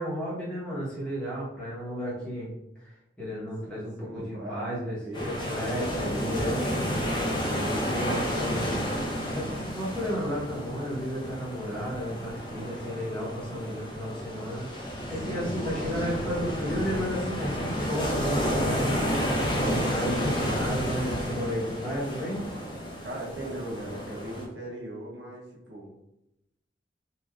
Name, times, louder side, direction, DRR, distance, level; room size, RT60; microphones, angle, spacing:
voice 1, 0.0-2.5 3.2-6.7 7.4-8.8 9.3-22.4, equal, 5° left, -9 dB, 1.0 m, -33 dB
voice 2, 3.6-6.4 15.2-15.8 23.0-25.9, right 1 dB, 80° right, -2 dB, 0.7 m, -40 dB
sound 1, 5.1-24.5, equal, 25° left, 0.5 m, -31 dB
3.1 x 2.4 x 2.3 m, 0.86 s
head